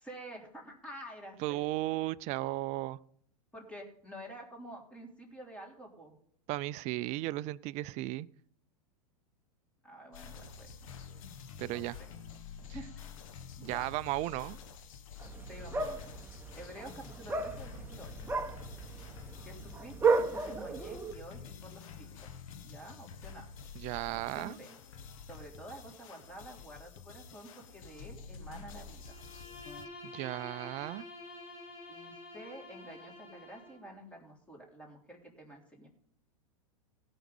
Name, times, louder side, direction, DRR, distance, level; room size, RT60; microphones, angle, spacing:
voice 1, 0.0-1.6 3.5-6.2 9.8-10.7 11.7-12.1 12.6-13.1 13.6-13.9 15.4-16.0 16.5-18.3 19.5-22.3 22.6-23.5 24.3-24.7 25.2-29.2 31.9-35.9, right 1 dB, 5° left, 3.5 m, -49 dB
voice 2, 1.4-3.0 6.5-8.3 11.6-12.0 13.6-14.6 23.7-24.6 30.0-31.1, right 18 dB, 40° right, 0.5 m, -35 dB
sound 1, 10.1-29.9, left 6 dB, 65° left, 1.3 m, -49 dB
sound 2, 15.2-21.1, right 4 dB, 10° right, 1.1 m, -34 dB
Bowed string instrument, 29.0-33.9, left 2 dB, 30° left, 2.4 m, -49 dB
16.5 x 6.2 x 5.4 m
hypercardioid pair, 110°, 18 cm